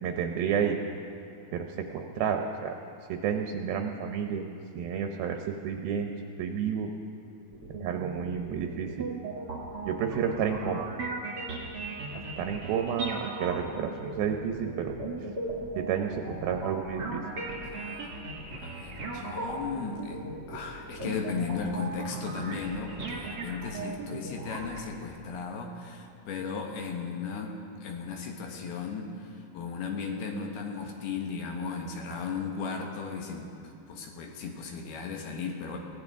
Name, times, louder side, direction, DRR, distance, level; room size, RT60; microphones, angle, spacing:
voice 1, 0.0-0.8 1.5-1.7 1.9-2.7 3.1-4.4 4.7-5.4 5.6-6.1 6.4-6.9 7.7-9.1 9.9-10.8 12.4-14.9 15.8-17.2, right 7 dB, 75° right, 4 dB, 2.3 m, -30 dB
sound 1, 7.5-24.8, right 3 dB, 30° right, 2.3 m, -37 dB
voice 2, 17.6-18.2 18.5-20.2 20.5-27.6 27.8-33.5 33.9-35.8, left 5 dB, 70° left, 2 dB, 3.0 m, -36 dB
23.0 x 17.0 x 3.6 m, 2.6 s
omnidirectional pair, 4.9 m